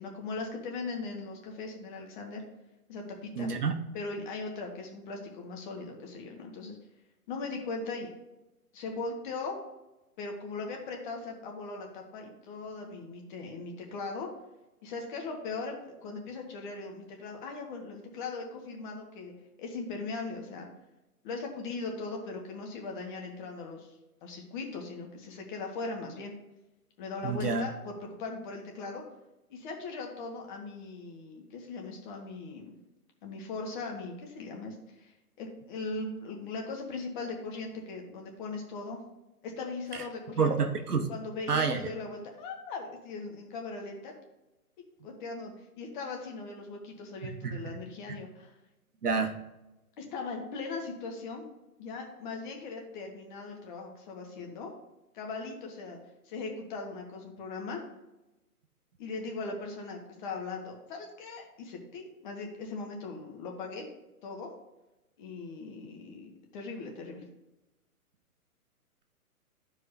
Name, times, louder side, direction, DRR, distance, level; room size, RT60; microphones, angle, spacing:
voice 1, 0.0-2.4 2.9-3.5 3.9-6.8 7.3-8.1 8.7-9.6 10.2-14.3 14.8-19.3 19.6-20.7 21.2-23.9 24.2-26.3 27.0-27.9 28.2-29.0 29.5-32.7 33.2-39.0 39.4-40.5 41.1-44.1 45.0-48.5 50.0-51.4 51.8-54.7 55.1-56.0 56.2-57.8 59.0-63.9 64.2-64.5 65.2-67.2, left 3 dB, 35° left, 1 dB, 1.7 m, -39 dB
voice 2, 3.3-3.8 27.2-27.7 39.9-40.1 40.4-41.1 41.5-41.9 47.2-47.6 49.0-49.4, right 5 dB, 85° right, 4 dB, 1.3 m, -29 dB
12.5 x 4.8 x 2.8 m, 0.99 s
hypercardioid pair, 145°, 45 cm